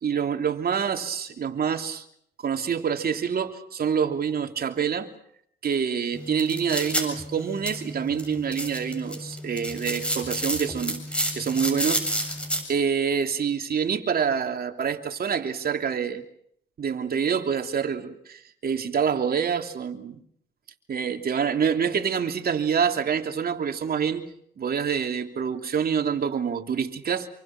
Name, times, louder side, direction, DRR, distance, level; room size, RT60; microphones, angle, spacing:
voice 1, 0.0-2.0 2.4-5.1 5.6-12.0 12.7-16.2 16.8-20.2 20.9-24.3 24.6-27.3, right 7 dB, 50° right, 5 dB, 3.1 m, -26 dB
sound 1, 6.1-12.6, equal, 5° left, 7.5 m, -31 dB
27.5 x 24.0 x 6.0 m, 0.68 s
cardioid pair, 90°, 20 cm